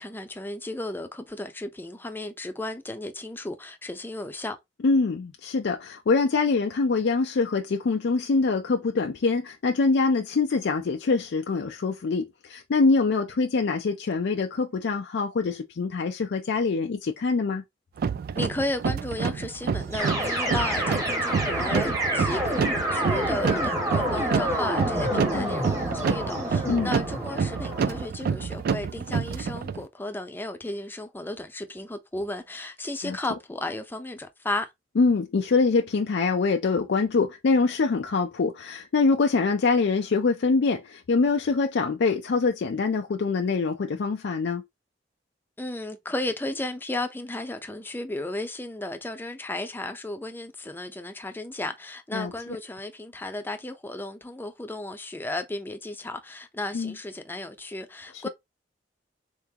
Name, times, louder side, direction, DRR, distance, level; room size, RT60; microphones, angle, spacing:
voice 1, 0.0-4.6 18.4-34.7 45.6-58.3, left 2 dB, 10° left, 0.6 m, -34 dB
voice 2, 4.8-17.6 25.1-25.5 26.7-26.9 33.0-33.2 35.0-44.6 52.1-52.3 56.7-56.9 58.1-58.3, left 4 dB, 70° left, 0.4 m, -24 dB
sound 1, 18.0-29.8, right 6 dB, 55° right, 0.3 m, -29 dB
sound 2, 19.8-26.8, right 4 dB, 40° right, 1.7 m, -42 dB
sound 3, 20.0-28.1, equal, 20° right, 1.1 m, -28 dB
3.8 x 3.7 x 2.8 m
head